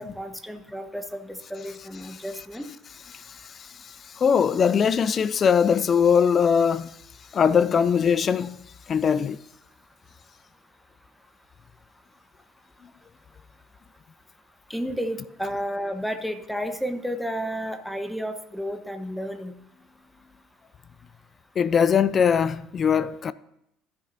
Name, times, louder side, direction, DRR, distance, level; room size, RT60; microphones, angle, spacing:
voice 1, 0.0-2.7 14.7-19.5, equal, ahead, 1.0 m, -32 dB
voice 2, 3.1-6.9 7.3-8.6 8.9-9.4 21.6-23.3, left 7 dB, 40° left, 0.3 m, -21 dB
15.0 x 6.1 x 2.7 m
figure-of-eight pair, 60°, 0 cm